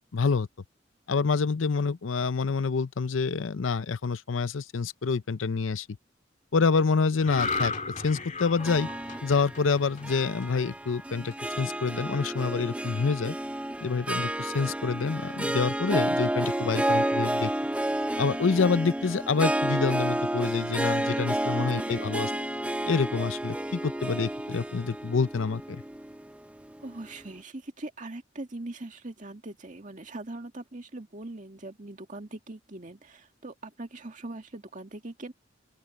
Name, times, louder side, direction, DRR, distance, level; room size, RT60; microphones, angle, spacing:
voice 1, 0.1-0.5 1.1-6.0 6.5-7.7 8.0-8.9 9.2-13.4 13.8-17.5 18.2-22.3 22.9-25.8, left 4 dB, 85° left, 0.6 m, -27 dB
sound 1, 7.2-10.7 11.1-11.3, left 3 dB, 40° left, 2.3 m, -34 dB
Harp, 8.6-27.0, right 1 dB, 5° right, 0.5 m, -31 dB
voice 2, 21.6-22.4 26.8-35.3, right 2 dB, 40° right, 2.0 m, -41 dB
open air
head